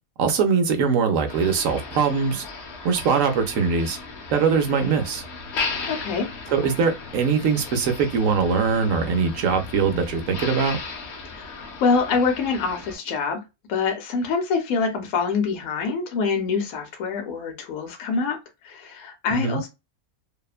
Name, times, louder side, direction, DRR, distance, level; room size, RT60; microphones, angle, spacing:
voice 1, 0.2-2.4 2.8-4.0 4.3-5.2 6.5-10.8 19.3-19.6, right 5 dB, 70° right, 0.9 m, -22 dB
Motor vehicle (road), 1.3-13.0, left 4 dB, 55° left, 0.9 m, -36 dB
voice 2, 5.9-6.3 11.3-13.4 13.7-18.4 18.6-19.7, left 5 dB, 75° left, 1.1 m, -25 dB
2.8 x 2.1 x 2.4 m
omnidirectional pair, 1.5 m